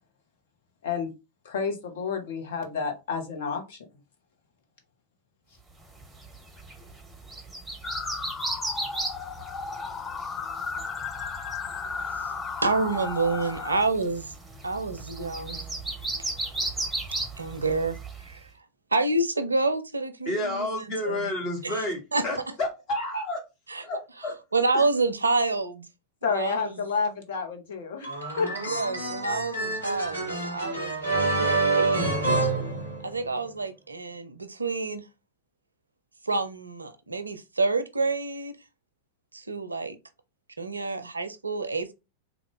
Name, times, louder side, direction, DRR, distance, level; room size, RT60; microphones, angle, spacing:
voice 1, 1.4-3.8 26.2-28.1 28.4-28.5, left 5 dB, 60° left, 1.0 m, -29 dB
sound 1, 5.9-18.4, right 2 dB, 5° right, 0.9 m, -36 dB
sound 2, 7.8-13.8, left 5 dB, 25° left, 0.4 m, -35 dB
voice 2, 12.6-14.3 14.6-15.6 17.4-18.5 18.9-21.2 21.6-21.8 22.1-22.6 23.7-23.9 24.5-25.9 26.3-26.8 28.5-32.5 33.0-35.0 36.2-38.5 39.3-40.0 40.6-41.9, right 3 dB, 80° right, 0.5 m, -28 dB
voice 3, 20.2-23.4 23.8-24.3, left 1 dB, 40° left, 1.6 m, -30 dB
sound 3, 28.0-33.4, right 2 dB, 85° left, 1.2 m, -27 dB
3.6 x 2.3 x 3.6 m
figure-of-eight pair, 90°, 0 cm